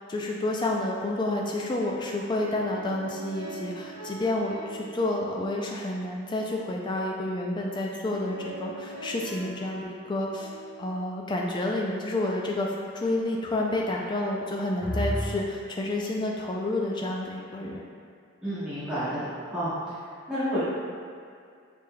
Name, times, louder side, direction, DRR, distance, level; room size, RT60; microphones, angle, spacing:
voice 1, 0.1-10.5 10.8-12.7 12.9-17.8, left 1 dB, 20° left, -1 dB, 0.3 m, -29 dB
sound 1, 2.3-6.1 8.1-11.7 14.8-15.3, equal, 40° left, 0.9 m, -38 dB
voice 2, 18.4-19.9 20.3-20.6, equal, 5° right, -16 dB, 1.1 m, -30 dB
5.1 x 3.2 x 2.2 m, 2.3 s
head